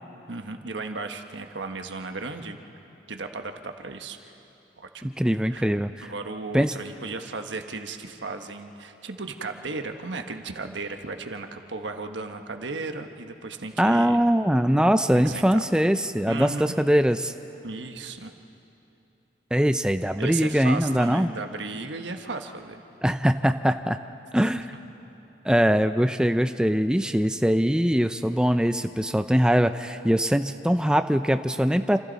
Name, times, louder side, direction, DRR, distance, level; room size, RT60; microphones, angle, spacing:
voice 1, 0.3-2.6 3.1-4.3 4.8-5.1 5.4-5.7 6.0-14.2 15.1-15.7 16.3-16.7 17.6-18.3 20.2-22.8, right 3 dB, 90° right, 6 dB, 1.3 m, -35 dB
voice 2, 5.0-6.1 6.5-6.7 13.8-17.3 19.5-21.3 23.0-24.0 24.3-24.7 25.4-32.0, equal, 5° right, 9 dB, 0.4 m, -22 dB
29.0 x 27.0 x 4.1 m, 2.9 s
head